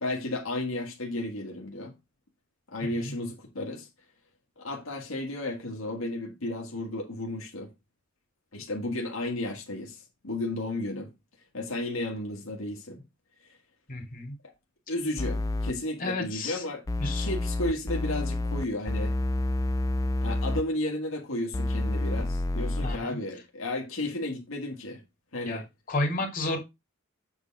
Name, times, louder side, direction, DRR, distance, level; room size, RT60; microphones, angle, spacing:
voice 1, 0.0-1.9 2.7-3.9 4.6-7.7 8.5-11.1 11.5-13.0 13.4-13.6 14.9-16.8 17.1-19.1 20.2-25.0 25.3-25.7, left 1 dB, 85° left, 1.6 m, -33 dB
voice 2, 2.8-3.1 13.9-14.3 16.0-16.6 17.0-17.3 22.8-23.2 25.4-25.6 25.9-26.6, left 2 dB, 40° left, 2.7 m, -31 dB
sound 1, 15.2-15.7 16.9-20.6 21.5-23.0, left 2 dB, 15° left, 0.4 m, -28 dB
8.0 x 3.7 x 5.9 m
head